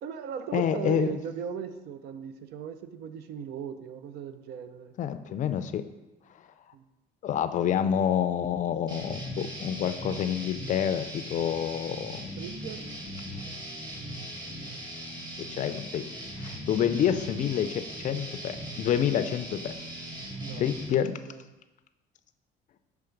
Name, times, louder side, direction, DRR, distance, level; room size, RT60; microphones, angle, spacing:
voice 1, 0.0-4.9 6.7-6.9 12.3-12.9 20.4-21.0 21.3-21.4, right 8 dB, 75° right, 10 dB, 0.5 m, -38 dB
voice 2, 0.5-1.1 5.0-5.8 7.2-12.3 15.5-16.0 16.4-19.7 20.6-21.2, left 9 dB, 50° left, 11 dB, 0.4 m, -28 dB
sound 1, 8.9-20.9, equal, 25° right, 1.4 m, -39 dB
5.7 x 3.5 x 5.1 m, 1.0 s
cardioid pair, 110°, 17 cm